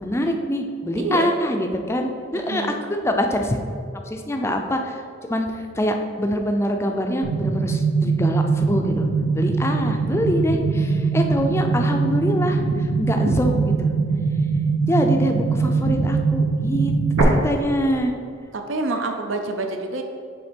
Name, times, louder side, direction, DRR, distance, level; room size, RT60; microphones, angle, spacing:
voice 1, 0.0-3.6 4.1-9.1 9.3-13.9 14.8-16.9 17.2-18.1, equal, 15° left, 4 dB, 0.4 m, -24 dB
voice 2, 1.0-1.3 2.3-2.7 18.5-20.0, right 2 dB, 65° right, 5 dB, 0.6 m, -27 dB
sound 1, 7.2-17.2, right 4 dB, 85° right, 1.0 m, -22 dB
7.0 x 3.5 x 5.1 m, 2.3 s
head